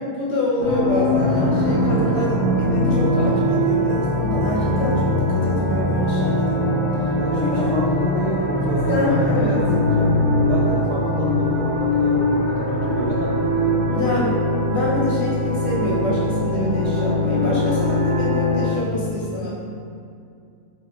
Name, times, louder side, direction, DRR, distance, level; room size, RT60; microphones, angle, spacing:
voice 1, 0.0-6.6 7.4-7.7 8.9-9.6 13.9-14.3 14.7-19.5, left 1 dB, 55° left, -5 dB, 1.0 m, -26 dB
sound 1, 0.6-18.7, left 1 dB, 30° right, 0.6 m, -21 dB
voice 2, 7.2-10.1 10.4-14.2, right 1 dB, 65° right, -3 dB, 0.7 m, -29 dB
4.4 x 2.8 x 3.7 m, 2.4 s
omnidirectional pair, 1.5 m